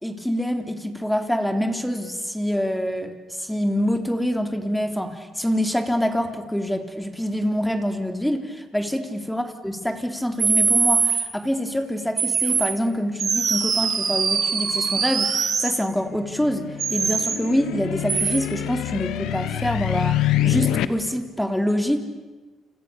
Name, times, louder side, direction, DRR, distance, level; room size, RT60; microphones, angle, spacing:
voice 1, 0.0-22.0, equal, 5° left, 6 dB, 3.5 m, -26 dB
sound 1, 10.4-11.2 12.2-12.7 13.2-15.7 16.8-17.4 18.1-18.4, right 5 dB, 50° right, 4.8 m, -22 dB
sound 2, 15.9-20.9, left 13 dB, 90° left, 1.3 m, -26 dB
29.5 x 28.0 x 7.0 m, 1.3 s
cardioid pair, 90°, 0 cm